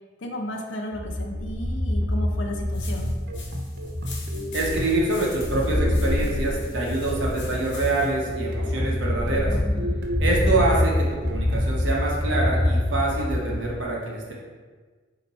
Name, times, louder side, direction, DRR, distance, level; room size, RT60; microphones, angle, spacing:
voice 1, 0.2-3.1, left 1 dB, 90° left, 2 dB, 0.6 m, -33 dB
sound 1, 0.9-13.8, left 1 dB, 15° left, 0.3 m, -26 dB
sound 2, 2.7-8.2, left 4 dB, 70° left, 1.0 m, -44 dB
sound 3, 3.3-11.8, equal, 55° right, 0.5 m, -36 dB
voice 2, 4.5-9.5 10.2-14.3, right 2 dB, 85° right, -3 dB, 1.0 m, -25 dB
4.2 x 2.9 x 4.1 m, 1.4 s
head